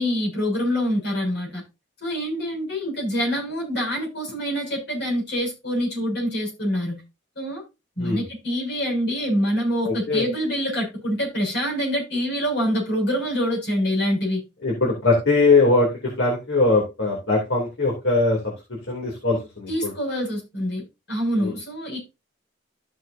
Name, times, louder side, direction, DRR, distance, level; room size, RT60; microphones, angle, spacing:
voice 1, 0.0-1.6 2.0-7.0 7.3-7.6 8.0-14.4 19.7-22.1, equal, 60° left, 6.7 m, -25 dB
voice 2, 9.8-10.3 14.6-15.9 16.2-18.4 18.9-19.9 21.4-21.5, left 3 dB, 75° left, 3.0 m, -21 dB
14.0 x 6.4 x 2.8 m
head